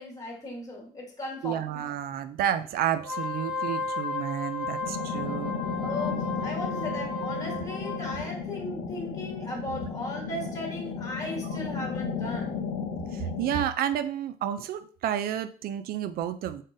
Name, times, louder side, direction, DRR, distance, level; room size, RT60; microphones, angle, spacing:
voice 1, 0.0-1.8 5.8-12.5, left 1 dB, 20° left, 0 dB, 1.4 m, -37 dB
voice 2, 1.4-5.5 13.1-16.6, right 10 dB, 65° right, 13 dB, 0.4 m, -30 dB
Wind instrument woodwind instrument, 3.0-8.2, left 3 dB, 5° right, 0.8 m, -34 dB
sound 1, 4.8-13.6, left 6 dB, 80° left, 0.7 m, -34 dB
3.7 x 3.6 x 2.6 m, 0.42 s
cardioid pair, 110°, 17 cm